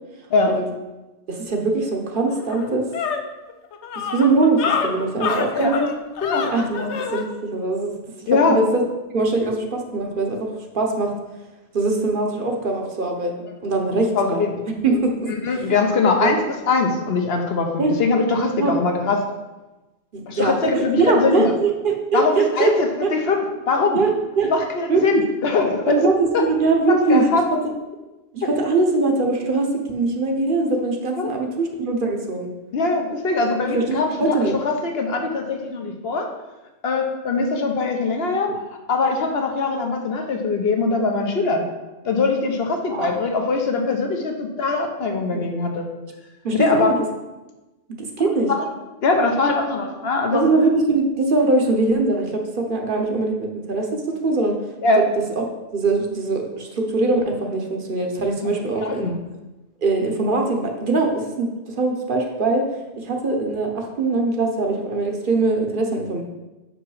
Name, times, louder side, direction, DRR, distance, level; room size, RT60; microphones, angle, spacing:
voice 1, 1.3-2.9 3.9-5.9 6.5-7.9 8.3-8.8 9.1-10.5 10.7-11.1 11.7-14.4 14.8-15.3 16.2-16.3 17.8-17.9 18.6-18.7 20.1-22.7 23.0-23.1 23.9-24.1 24.4-24.5 24.9-25.2 25.9-27.6 28.3-32.5 33.7-34.5 42.9-43.1 45.3-45.4 46.4-46.9 48.0-48.5 50.3-54.6 55.4-55.5 55.7-59.1 59.8-62.6 63.0-66.2, right 3 dB, 50° right, 2 dB, 1.0 m, -22 dB
sound 1, 1.8-1.9 2.3-7.3, left 6 dB, 80° left, 1.0 m, -27 dB
voice 2, 8.3-8.6 14.1-14.5 15.3-16.4 16.7-19.2 20.3-21.5 22.1-24.0 24.4-26.0 26.3-26.4 26.9-27.4 31.2-31.3 32.7-36.3 36.8-38.5 38.9-41.6 42.0-45.8 46.5-46.9 48.5-48.6 49.0-50.4 54.8-55.0 58.8-59.1, left 3 dB, 60° left, 3 dB, 1.1 m, -21 dB
6.0 x 5.3 x 4.8 m, 1.1 s
omnidirectional pair, 1.2 m